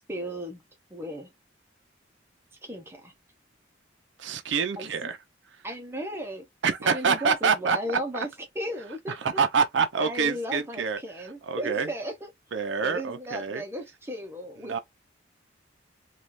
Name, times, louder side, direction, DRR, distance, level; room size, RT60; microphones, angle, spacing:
voice 1, 0.1-0.6 0.9-1.3 2.6-3.1 4.8-4.9 5.6-6.4 6.8-8.3 8.6-9.2 10.0-12.3 12.8-14.8, equal, 15° right, 0.6 m, -35 dB
voice 2, 4.2-5.2 6.6-7.8 9.1-11.0 11.4-11.9 12.5-13.6 14.6-14.8, right 5 dB, 70° right, 0.5 m, -26 dB
3.1 x 2.3 x 2.5 m
head